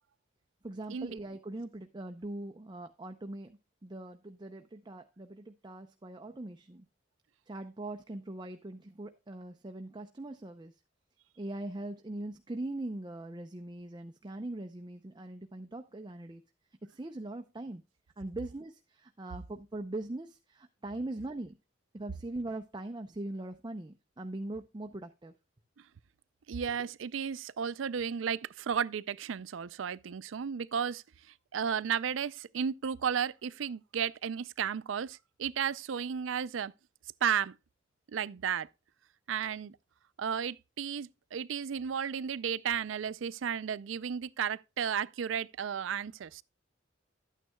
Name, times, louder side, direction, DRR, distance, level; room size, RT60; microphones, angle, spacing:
voice 1, 0.6-6.9 7.5-10.8 11.4-16.4 16.8-17.8 18.2-21.6 21.9-25.3, right 2 dB, 25° right, 0.6 m, -41 dB
voice 2, 26.5-31.0 31.5-36.7 37.2-37.5 38.1-38.7 39.3-39.8 40.2-46.4, right 7 dB, 80° right, 0.4 m, -33 dB
12.0 x 9.1 x 2.3 m
head